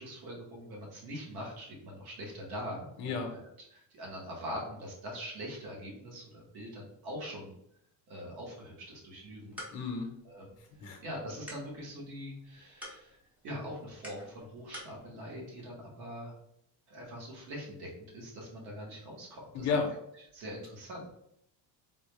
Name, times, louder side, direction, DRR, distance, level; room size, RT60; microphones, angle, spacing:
voice 1, 0.0-3.4 3.7-7.5 8.1-9.6 10.2-10.5 10.8-13.2 13.4-16.3 16.9-19.8 20.3-21.1, equal, 55° right, -2 dB, 1.4 m, -43 dB
voice 2, 3.0-3.3 9.7-10.1 10.6-11.0 19.5-19.9, left 5 dB, 40° left, 3 dB, 0.7 m, -32 dB
sound 1, 9.1-15.0, left 1 dB, 5° right, 0.5 m, -51 dB
3.7 x 2.2 x 3.2 m, 0.74 s
cardioid pair, 180°, 44 cm